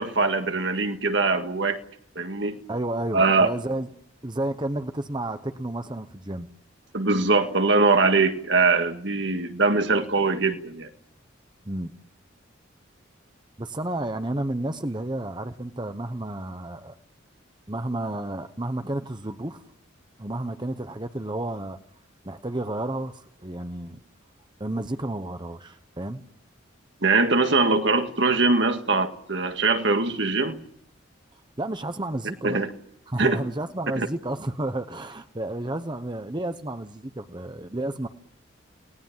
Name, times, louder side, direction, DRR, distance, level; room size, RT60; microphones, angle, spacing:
voice 1, 0.0-1.8 2.2-2.6 3.1-3.5 6.9-10.9 27.0-30.6 32.4-32.7 33.2-33.4 34.0-34.1, right 3 dB, 60° right, 1.9 m, -22 dB
voice 2, 2.7-3.9 4.2-6.5 11.6-11.9 13.6-16.9 17.7-19.6 20.2-21.8 22.2-24.0 24.6-26.2 31.6-32.6 33.1-38.1, right 1 dB, 25° right, 1.0 m, -31 dB
29.5 x 18.5 x 7.5 m
head